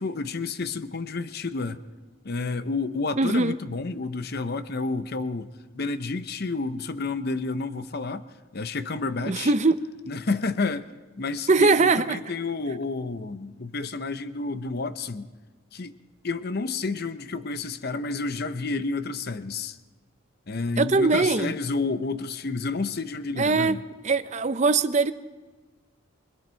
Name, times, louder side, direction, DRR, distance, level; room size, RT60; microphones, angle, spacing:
voice 1, 0.0-1.8 2.2-5.5 5.7-8.2 8.5-9.5 10.1-10.9 11.2-15.3 15.7-16.0 16.2-19.8 20.5-23.8, left 3 dB, 50° left, 0.7 m, -30 dB
voice 2, 3.2-3.6 9.3-9.8 11.5-12.2 20.8-21.5 23.4-23.8 24.0-25.1, right 3 dB, 35° right, 0.6 m, -21 dB
27.5 x 22.5 x 4.5 m
head